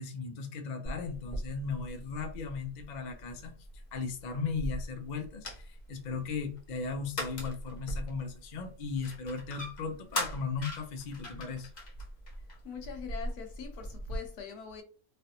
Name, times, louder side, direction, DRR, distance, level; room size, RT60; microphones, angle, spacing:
voice 1, 0.0-11.7, left 5 dB, 60° left, 0.4 m, -37 dB
sound 1, 0.8-14.2, left 1 dB, 35° left, 0.8 m, -41 dB
voice 2, 12.6-14.8, left 6 dB, 85° left, 1.3 m, -42 dB
3.2 x 2.5 x 2.8 m
omnidirectional pair, 1.6 m